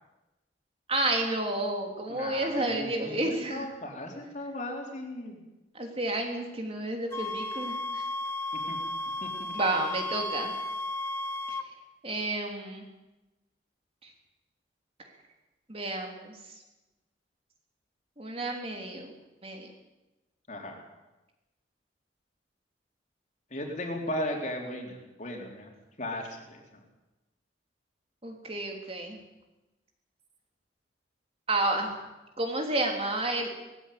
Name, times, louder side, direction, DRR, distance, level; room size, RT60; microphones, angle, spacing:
voice 1, 0.9-3.7 5.7-8.0 9.5-10.5 11.5-11.6 12.0-12.8 15.7-16.4 18.2-19.1 19.4-19.7 28.2-29.2 31.5-31.9 32.4-33.5, right 2 dB, 30° right, 2 dB, 3.3 m, -31 dB
voice 2, 2.1-5.4 8.7-8.8 9.2-9.5 20.5-20.8 23.5-25.7 26.0-26.6, left 1 dB, 40° left, 1 dB, 3.9 m, -36 dB
sound 1, 7.1-11.7, left 2 dB, 15° left, 0.8 m, -34 dB
19.5 x 15.0 x 9.4 m, 1.0 s
head